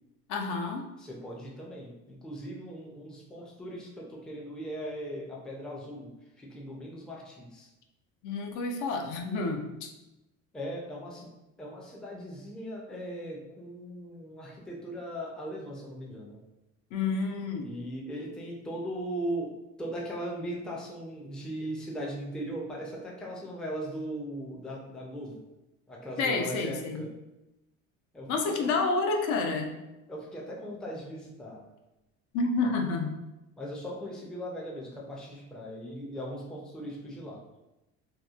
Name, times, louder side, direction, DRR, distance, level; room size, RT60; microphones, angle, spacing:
voice 1, 0.3-0.9 8.2-9.9 16.9-17.7 26.2-27.0 28.3-29.8 32.3-33.2, left 3 dB, 65° left, 3 dB, 0.5 m, -29 dB
voice 2, 1.0-6.1 6.4-7.7 10.5-11.3 11.6-16.4 17.6-25.5 25.9-27.1 28.1-28.7 30.1-31.6 32.6-32.7 33.6-37.4, equal, ahead, -3 dB, 0.3 m, -39 dB
2.8 x 2.1 x 2.3 m, 0.97 s
cardioid pair, 120°, 32 cm